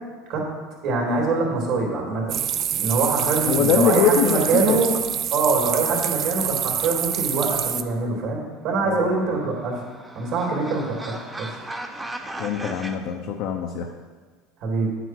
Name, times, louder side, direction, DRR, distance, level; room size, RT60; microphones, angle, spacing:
voice 1, 0.8-2.4 2.7-4.9 5.3-9.8 10.1-11.5 14.6-14.9, right 3 dB, 55° right, -1 dB, 3.2 m, -24 dB
sound 1, 2.3-7.8, right 9 dB, 40° right, 0.4 m, -26 dB
voice 2, 3.4-4.8 8.8-9.4 12.4-13.9, left 7 dB, 60° left, 2 dB, 0.8 m, -23 dB
sound 2, 9.1-13.0, right 1 dB, 10° right, 0.7 m, -37 dB
9.2 x 8.0 x 4.7 m, 1.4 s
supercardioid pair, 135°, 0 cm